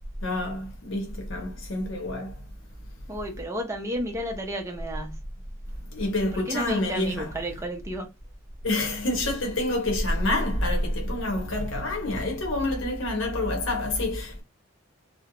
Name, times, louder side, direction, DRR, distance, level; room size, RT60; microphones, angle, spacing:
voice 1, 0.2-2.3 5.9-7.3 8.6-14.4, left 1 dB, 65° left, 0.8 m, -27 dB
voice 2, 3.1-5.2 6.3-8.1, equal, 15° right, 0.6 m, -32 dB
2.4 x 2.0 x 2.9 m
head